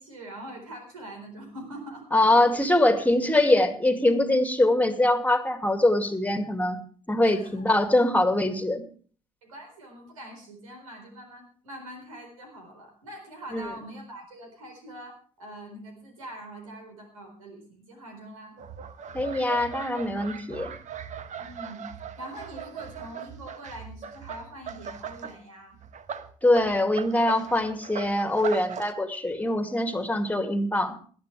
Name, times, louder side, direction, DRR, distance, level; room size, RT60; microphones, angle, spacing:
voice 1, 0.0-2.1 2.4-2.5 7.2-7.7 9.4-18.5 21.4-21.9 22.2-25.8, right 1 dB, 80° right, 4 dB, 4.3 m, -43 dB
voice 2, 2.1-6.8 7.1-8.8 13.5-13.6 19.1-20.7 26.4-30.9, left 1 dB, 10° left, 7 dB, 2.3 m, -23 dB
sound 1, 18.6-25.4 25.7-28.9, right 7 dB, 45° right, 1.2 m, -39 dB
19.5 x 11.5 x 3.3 m, 0.43 s
figure-of-eight pair, 55°, 17 cm